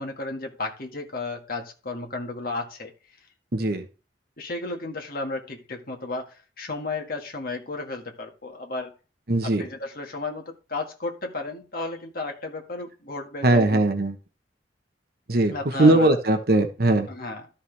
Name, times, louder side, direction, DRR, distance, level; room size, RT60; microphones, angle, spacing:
voice 1, 0.0-2.9 4.4-8.9 9.4-13.8 15.5-16.2 17.1-17.5, left 2 dB, 50° left, 3 dB, 1.8 m, -33 dB
voice 2, 3.5-3.8 9.3-9.6 13.4-14.1 15.3-15.5 15.8-17.1, right 2 dB, 55° right, 6 dB, 1.1 m, -20 dB
13.0 x 5.7 x 3.4 m, 0.33 s
head